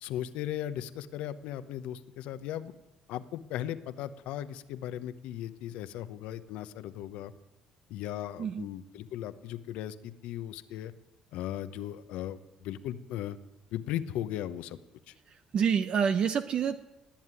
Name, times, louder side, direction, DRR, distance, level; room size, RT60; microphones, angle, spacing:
voice 1, 0.0-2.7 3.1-7.3 7.9-10.9 11.3-13.4 13.7-14.8 15.1-15.2, left 11 dB, 75° left, 13 dB, 0.9 m, -37 dB
voice 2, 15.3-16.8, right 7 dB, 55° right, 10 dB, 0.8 m, -28 dB
19.0 x 7.4 x 9.7 m, 1.1 s
supercardioid pair, 70°, 2 cm